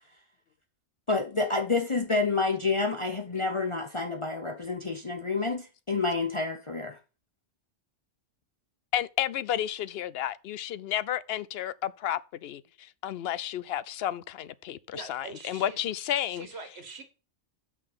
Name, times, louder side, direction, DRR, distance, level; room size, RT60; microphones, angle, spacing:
voice 1, 1.1-7.0, left 3 dB, 30° left, 0.9 m, -28 dB
voice 2, 8.9-16.5, left 11 dB, 65° left, 0.7 m, -32 dB
voice 3, 14.9-15.8 16.3-17.0, right 3 dB, 60° right, 2.0 m, -43 dB
6.2 x 5.8 x 6.6 m
omnidirectional pair, 1.2 m